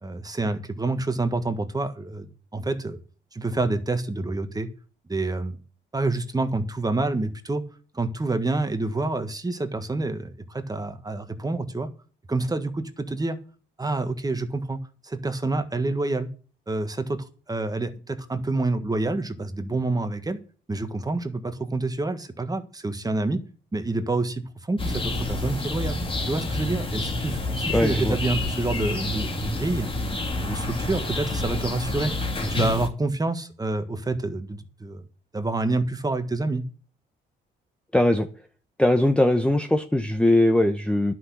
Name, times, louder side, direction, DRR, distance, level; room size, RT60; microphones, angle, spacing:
voice 1, 0.0-2.2 2.5-3.0 3.3-4.7 5.1-5.6 5.9-7.6 7.9-11.9 12.3-13.4 13.8-16.3 16.7-20.4 20.7-23.4 23.7-26.0 26.2-29.9 30.4-32.1 32.4-35.0 35.3-36.6, right 2 dB, 20° right, 1.5 m, -28 dB
sound 1, 24.8-32.9, left 2 dB, 25° left, 1.9 m, -28 dB
voice 2, 27.7-28.2 37.9-38.3 38.8-41.1, left 1 dB, 5° left, 0.9 m, -20 dB
11.0 x 6.1 x 8.5 m
cardioid pair, 90°, 20 cm